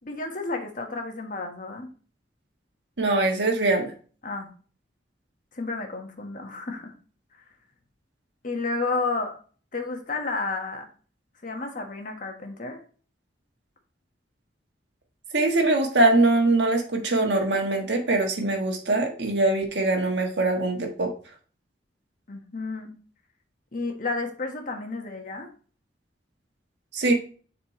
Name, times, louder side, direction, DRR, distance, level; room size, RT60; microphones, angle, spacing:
voice 1, 0.0-1.9 4.2-4.5 5.5-6.9 8.4-9.3 9.7-10.8 11.4-12.8 22.3-22.9 23.7-25.5, left 3 dB, 50° left, 4 dB, 1.3 m, -31 dB
voice 2, 3.0-3.9 15.3-21.1 26.9-27.1, right 2 dB, 75° right, 1 dB, 1.5 m, -22 dB
7.5 x 4.3 x 3.0 m, 0.39 s
head